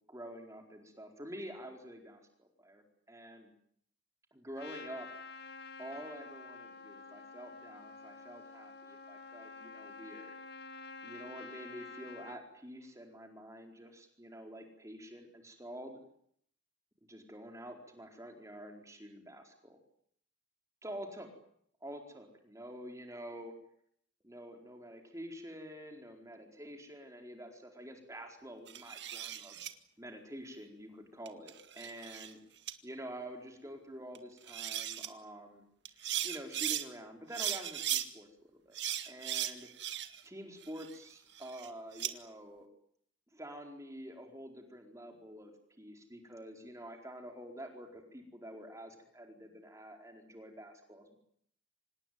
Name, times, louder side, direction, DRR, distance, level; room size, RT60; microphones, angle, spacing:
voice 1, 0.1-3.5 4.3-5.1 5.8-10.4 11.0-16.0 17.1-19.8 20.8-21.3 21.8-23.5 24.2-29.6 30.0-32.4 32.8-38.8 39.1-39.7 40.2-42.7 43.3-51.2, equal, 15° right, 3 dB, 4.4 m, -48 dB
Trumpet, 4.6-12.4, left 3 dB, 55° left, 2.2 m, -49 dB
sound 1, 28.7-29.7 31.3-32.3 32.7-32.8 34.1-34.2 34.5-35.1 35.8-36.8 37.3-38.1 38.7-40.3 40.6-42.1, right 11 dB, 60° right, 1.9 m, -37 dB
26.5 x 20.0 x 9.6 m, 0.67 s
head